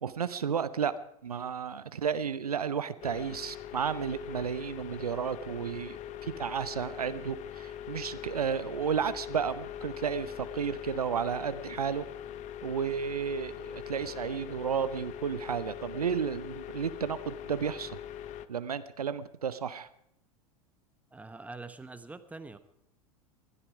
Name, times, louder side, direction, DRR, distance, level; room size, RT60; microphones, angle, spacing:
voice 1, 0.0-0.9 1.2-6.0 6.2-12.0 12.6-18.0 18.5-19.9, right 7 dB, 80° right, 14 dB, 0.8 m, -32 dB
sound 1, 3.0-18.5, left 10 dB, 40° left, 1.0 m, -42 dB
voice 2, 21.1-22.6, right 3 dB, 5° right, 11 dB, 1.2 m, -44 dB
20.0 x 13.0 x 4.9 m, 0.75 s
figure-of-eight pair, 85°, 19 cm